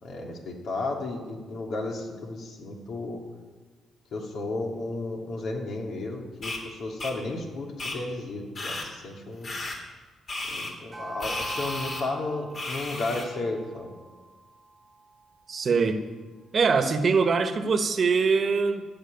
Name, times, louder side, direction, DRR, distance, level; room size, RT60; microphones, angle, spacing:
voice 1, 0.0-3.2 4.1-9.5 10.5-13.9, left 2 dB, 65° left, 0 dB, 3.0 m, -33 dB
sound 1, 6.4-6.6 7.0-7.1 7.8-8.0 8.5-8.9 9.4-9.8 10.3-10.7 11.2-12.0 12.5-13.2, left 2 dB, 45° left, 3.2 m, -34 dB
sound 2, 10.9-15.5, right 2 dB, 20° right, 1.2 m, -42 dB
voice 2, 15.5-16.0 16.5-18.8, right 5 dB, 45° right, 8 dB, 1.3 m, -23 dB
14.5 x 6.3 x 9.5 m, 1.4 s
cardioid pair, 90°, 0 cm